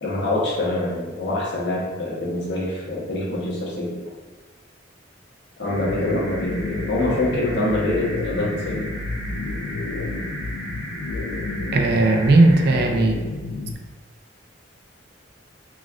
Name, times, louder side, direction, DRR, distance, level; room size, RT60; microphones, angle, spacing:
voice 1, 0.0-4.0 5.6-8.9, left 1 dB, 60° left, -4 dB, 0.8 m, -25 dB
sound 1, 5.6-12.9, right 1 dB, 10° left, 1.3 m, -37 dB
sound 2, 5.7-13.7, left 3 dB, 75° left, 0.3 m, -30 dB
voice 2, 11.7-13.2, right 2 dB, 50° right, 3 dB, 0.3 m, -16 dB
4.0 x 2.3 x 2.3 m, 1.3 s
head